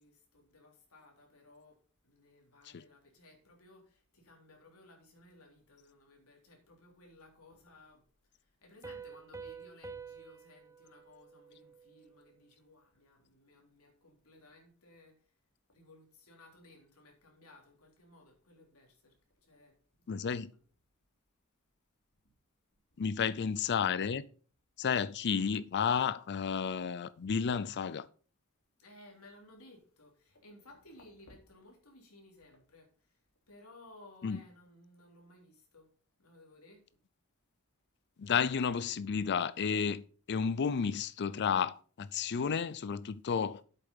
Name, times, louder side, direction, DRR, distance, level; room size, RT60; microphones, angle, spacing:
voice 1, 0.0-15.4 15.7-20.6 22.2-22.3 22.9-23.1 28.8-35.9 36.2-36.9, left 2 dB, 75° left, 3.6 m, -59 dB
Piano, 8.8-12.3, right 5 dB, 15° right, 0.5 m, -49 dB
voice 2, 20.1-20.5 23.0-24.2 24.8-28.1 34.2-34.4 38.2-43.6, left 6 dB, 50° left, 0.4 m, -32 dB
8.4 x 6.8 x 5.5 m
head